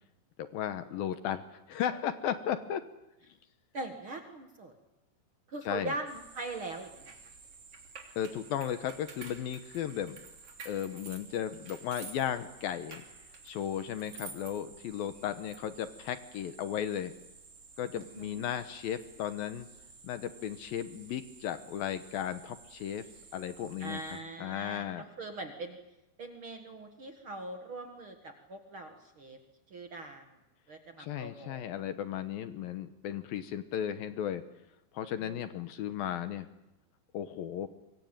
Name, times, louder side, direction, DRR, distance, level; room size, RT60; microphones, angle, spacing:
voice 1, 0.5-2.9 5.6-5.9 8.2-10.2 10.7-13.0 13.5-17.1 17.8-19.7 20.0-23.1 23.3-25.0 31.0-34.4 34.9-36.5 37.1-37.7, left 10 dB, 70° left, 10 dB, 2.4 m, -35 dB
voice 2, 3.7-4.7 5.5-7.1 17.9-18.4 23.8-25.8 26.2-29.4 29.7-30.3 30.7-31.8 35.2-35.4, right 2 dB, 60° right, 5 dB, 1.3 m, -41 dB
sound 1, 6.1-24.2, right 5 dB, 80° right, 7.3 m, -55 dB
sound 2, 7.1-7.2 7.7-12.3 12.6-14.5 15.5-15.6, right 4 dB, 35° right, 3.6 m, -48 dB
24.5 x 23.0 x 9.0 m, 0.93 s
omnidirectional pair, 5.2 m